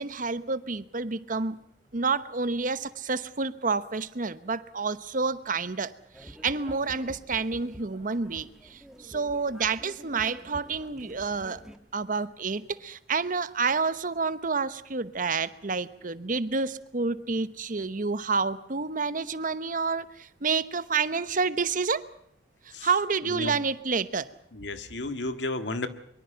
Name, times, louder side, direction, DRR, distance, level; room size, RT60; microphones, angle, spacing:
voice 1, 0.0-1.6 1.9-11.6 11.9-22.0 22.6-24.3, right 4 dB, 50° right, 14 dB, 1.0 m, -29 dB
sound 1, 6.1-11.8, equal, 5° right, 1.5 m, -48 dB
voice 2, 23.3-23.6 24.5-25.9, left 2 dB, 85° left, 9 dB, 1.8 m, -32 dB
23.5 x 23.5 x 5.8 m, 0.70 s
head